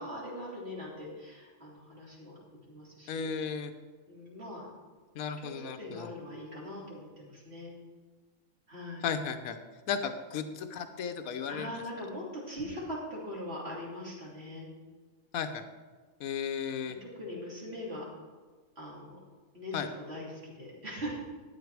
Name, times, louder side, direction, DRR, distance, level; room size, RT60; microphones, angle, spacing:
voice 1, 0.0-2.4 2.7-3.3 4.1-4.7 5.4-7.7 8.7-9.1 11.5-14.7 17.0-18.0 18.8-19.2 19.5-21.2, left 1 dB, 45° right, -5 dB, 3.3 m, -41 dB
voice 2, 3.1-3.7 5.1-6.1 9.0-9.6 9.9-11.7 15.3-15.6 16.2-16.9 19.7-19.9, left 6 dB, 80° left, 8 dB, 1.2 m, -34 dB
13.0 x 9.1 x 4.7 m, 1.4 s
omnidirectional pair, 1.5 m